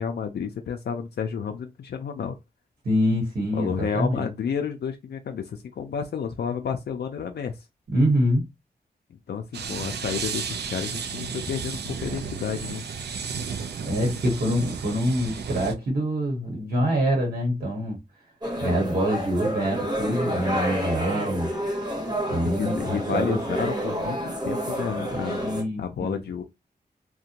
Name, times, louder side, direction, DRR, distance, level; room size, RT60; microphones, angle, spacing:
voice 1, 0.0-2.4 3.5-7.6 9.1-12.8 18.6-18.9 22.5-24.2 24.4-25.4 25.8-26.4, left 7 dB, 75° left, 0.4 m, -31 dB
voice 2, 2.8-4.3 7.9-8.4 13.8-18.0 18.6-21.5 22.3-23.4 25.1-26.2, equal, 60° right, 1.0 m, -25 dB
sound 1, 9.5-15.7, right 6 dB, 75° right, 0.4 m, -33 dB
sound 2, 18.4-25.6, equal, 25° right, 0.8 m, -29 dB
2.5 x 2.2 x 2.8 m
wide cardioid pair, 95°, 17 cm